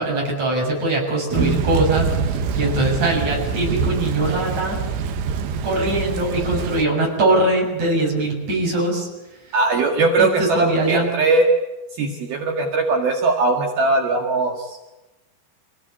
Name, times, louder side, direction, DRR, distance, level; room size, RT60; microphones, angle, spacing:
voice 1, 0.0-4.8 5.6-9.1 9.4-9.6 10.2-11.1, right 2 dB, 40° right, -1 dB, 8.4 m, -22 dB
Thunder / Rain, 1.3-6.9, right 5 dB, 80° right, 3.6 m, -25 dB
voice 2, 9.5-11.5 12.0-14.8, right 3 dB, 60° right, 1 dB, 3.7 m, -20 dB
27.5 x 17.5 x 8.6 m, 1.1 s
omnidirectional pair, 5.1 m